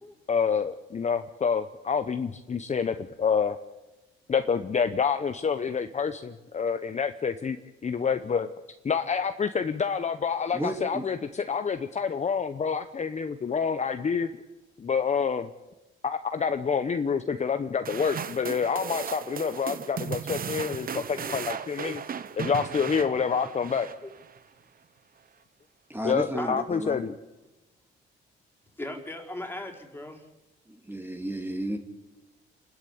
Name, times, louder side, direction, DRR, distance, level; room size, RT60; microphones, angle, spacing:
voice 1, 0.3-3.6 4.3-7.6 7.8-8.5 8.8-14.3 14.8-15.5 16.0-22.0 22.4-23.9 26.0-27.1, left 6 dB, 35° left, 8 dB, 1.0 m, -27 dB
voice 2, 10.5-11.1 25.9-27.0 30.7-31.8, right 1 dB, 10° right, 4 dB, 2.4 m, -32 dB
sound 1, 17.8-24.4, right 7 dB, 45° right, 1.1 m, -36 dB
voice 3, 28.8-30.3, left 1 dB, 10° left, 2 dB, 4.4 m, -37 dB
28.0 x 12.0 x 8.6 m, 1.0 s
cardioid pair, 90°, 20 cm